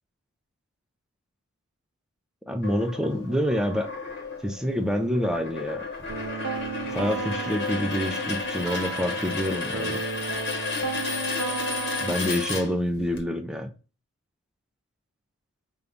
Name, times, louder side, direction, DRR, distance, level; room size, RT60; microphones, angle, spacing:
voice 1, 2.5-3.9 4.4-5.8 6.8-10.0 12.0-13.7, equal, 5° right, 5 dB, 0.4 m, -27 dB
sound 1, 2.6-13.2, left 4 dB, 50° left, 1.0 m, -32 dB
sound 2, 6.1-12.2, right 5 dB, 75° right, 0.8 m, -34 dB
5.0 x 2.3 x 3.5 m, 0.34 s
head